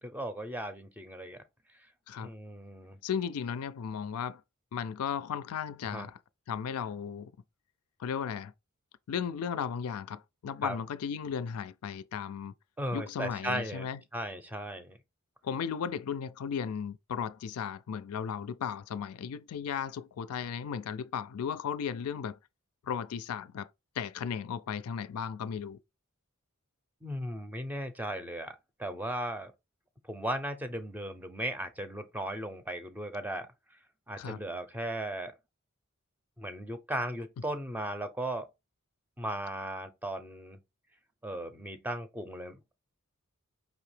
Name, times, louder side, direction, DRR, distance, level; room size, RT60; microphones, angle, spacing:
voice 1, 0.0-1.4 2.2-3.0 5.8-6.1 10.6-10.8 12.8-15.0 27.0-29.5 30.1-33.5 34.1-35.3 36.4-38.5 39.2-40.6 41.2-42.7, right 1 dB, 10° right, 0.5 m, -37 dB
voice 2, 3.0-4.4 4.7-6.2 6.5-7.3 8.0-8.5 9.1-12.5 12.9-14.0 15.4-22.4 22.8-23.7 24.0-25.8 34.2-34.4, left 7 dB, 80° left, 0.4 m, -35 dB
5.0 x 2.8 x 3.2 m
head